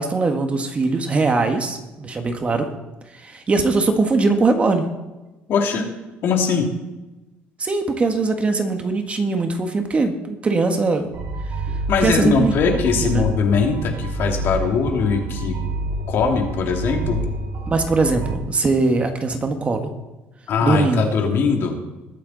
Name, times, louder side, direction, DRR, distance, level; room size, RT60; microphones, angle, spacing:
voice 1, 0.0-2.7 3.1-4.8 7.6-11.1 12.0-12.5 12.9-13.3 17.7-19.9 20.6-21.1, right 3 dB, 30° right, 5 dB, 1.7 m, -21 dB
voice 2, 5.5-5.9 6.2-6.7 11.9-15.6 16.1-17.2 20.5-21.8, left 5 dB, 60° left, 2 dB, 2.6 m, -20 dB
sound 1, 11.1-18.3, right 2 dB, 60° right, 2.3 m, -28 dB
20.5 x 8.7 x 4.1 m, 1.1 s
cardioid pair, 105°, 4 cm